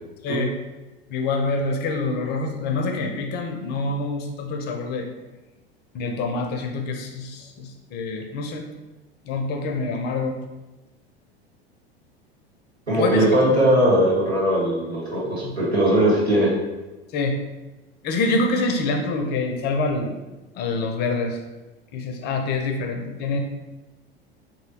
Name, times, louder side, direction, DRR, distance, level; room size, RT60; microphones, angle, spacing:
voice 1, 1.1-5.1 5.9-8.7 9.3-10.4 12.9-13.6 15.4-15.5 17.1-17.4 18.0-20.2 20.6-21.4 21.9-23.4, left 3 dB, 35° left, 3 dB, 0.5 m, -26 dB
voice 2, 12.9-16.6, right 1 dB, 85° right, -6 dB, 1.1 m, -19 dB
3.2 x 2.7 x 2.7 m, 1.1 s
figure-of-eight pair, 80°, 31 cm